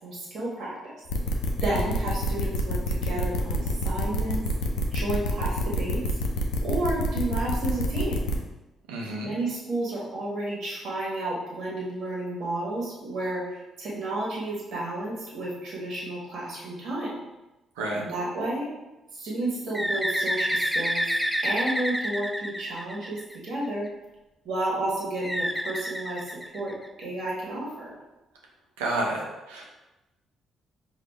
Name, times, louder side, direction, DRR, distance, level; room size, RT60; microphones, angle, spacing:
voice 1, 0.0-0.7 1.6-4.4 4.9-6.0 6.6-8.2 9.1-17.2 17.9-18.7 19.1-21.1 21.4-23.9 24.4-26.7 27.0-27.9, right 1 dB, 65° right, -5 dB, 1.5 m, -31 dB
sound 1, 1.1-8.4, equal, 80° left, 0.5 m, -27 dB
voice 2, 8.9-9.3 17.8-18.0 28.8-29.7, right 2 dB, 90° right, -1 dB, 0.8 m, -30 dB
Bird, 19.7-23.5 25.2-27.0, equal, ahead, 0.4 m, -29 dB
5.0 x 2.7 x 3.5 m, 1.0 s
hypercardioid pair, 55°, 0 cm